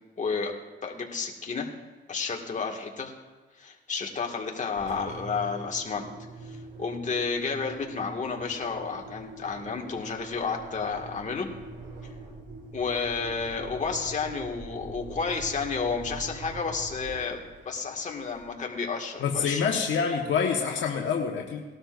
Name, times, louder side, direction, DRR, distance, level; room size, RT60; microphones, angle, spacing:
voice 1, 0.2-0.5 0.8-1.7 2.1-3.1 3.6-6.1 6.4-11.5 12.7-17.4 17.7-19.6, left 5 dB, 40° left, 1 dB, 2.1 m, -31 dB
Engine, 4.7-18.7, right 3 dB, 60° right, 4.7 m, -43 dB
voice 2, 19.2-21.6, left 6 dB, 70° left, 1 dB, 1.5 m, -26 dB
19.0 x 12.5 x 2.6 m, 1.3 s
cardioid pair, 90°, 20 cm